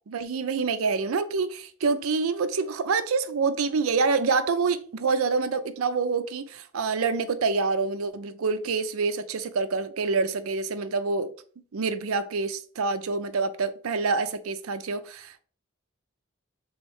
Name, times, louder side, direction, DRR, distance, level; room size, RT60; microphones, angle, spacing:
voice 1, 0.1-11.3 11.7-15.4, right 4 dB, 80° right, 0.5 m, -26 dB
3.6 x 3.1 x 4.6 m
head